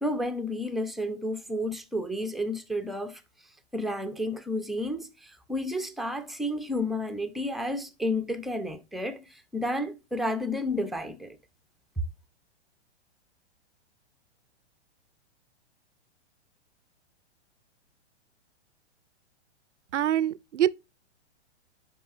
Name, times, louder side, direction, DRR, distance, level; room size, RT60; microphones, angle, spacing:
voice 1, 0.0-3.2 3.7-11.4, left 1 dB, ahead, 0.6 m, -31 dB
voice 2, 19.9-20.7, right 11 dB, 80° right, 0.6 m, -25 dB
10.0 x 5.9 x 2.6 m
hypercardioid pair, 115°, 35 cm